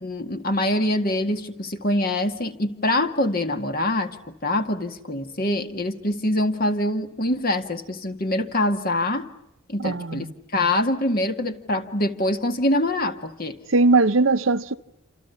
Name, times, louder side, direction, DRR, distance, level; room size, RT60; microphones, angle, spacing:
voice 1, 0.0-9.3 9.7-10.3 10.5-13.6, left 1 dB, 45° left, 2.0 m, -24 dB
voice 2, 9.8-10.3 13.7-14.7, right 3 dB, 75° right, 0.9 m, -19 dB
28.5 x 27.5 x 7.1 m
head